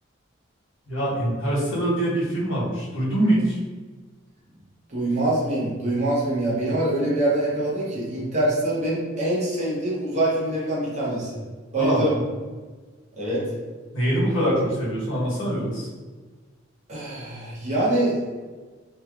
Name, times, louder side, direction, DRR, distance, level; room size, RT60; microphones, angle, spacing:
voice 1, 0.9-3.6 11.7-12.0 13.9-15.9, right 1 dB, 75° left, -7 dB, 1.1 m, -24 dB
voice 2, 4.9-11.4 11.7-12.2 13.2-13.4 16.9-18.2, right 1 dB, 35° right, -6 dB, 0.9 m, -24 dB
3.1 x 2.9 x 2.4 m, 1.4 s
head